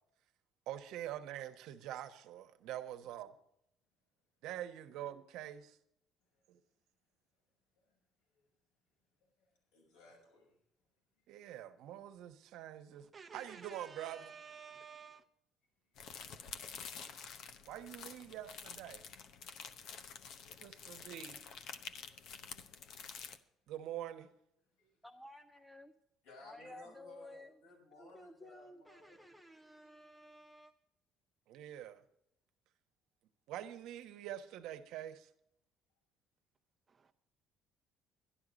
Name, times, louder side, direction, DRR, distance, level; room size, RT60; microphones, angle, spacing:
voice 1, 0.7-3.3 4.4-5.8 6.5-6.6 11.3-14.3 17.7-19.0 20.6-21.5 23.7-24.3 31.5-32.0 33.5-35.3, right 12 dB, 75° right, 1.1 m, -45 dB
voice 2, 9.4-10.6 11.2-11.3 20.0-20.2 24.8-25.0 26.2-29.2, left 3 dB, 85° left, 6.2 m, -60 dB
voice 3, 12.9-15.2 36.9-37.1, right 6 dB, 25° right, 0.8 m, -53 dB
sound 1, 16.0-23.4, left 6 dB, 65° left, 0.8 m, -49 dB
voice 4, 25.0-25.9 26.4-27.5 28.0-30.7, left 1 dB, 5° left, 0.6 m, -54 dB
11.5 x 11.5 x 5.1 m
cardioid pair, 135°, 0 cm